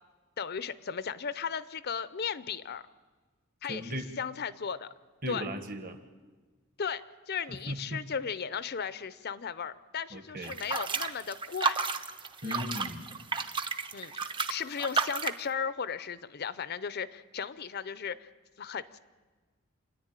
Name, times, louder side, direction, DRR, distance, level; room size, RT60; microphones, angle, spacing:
voice 1, 0.4-2.8 3.6-4.9 5.3-5.5 6.8-11.8 12.4-12.6 13.9-18.3 18.6-19.0, left 6 dB, 50° left, 15 dB, 0.6 m, -36 dB
voice 2, 3.6-4.1 5.2-6.0 7.5-8.0 10.1-10.6 12.4-13.1, equal, 40° right, 7 dB, 1.6 m, -37 dB
Foley Street Water Washing Plastic Drum, 10.4-15.4, right 5 dB, 25° right, 0.7 m, -32 dB
28.0 x 10.5 x 9.0 m, 1.3 s
head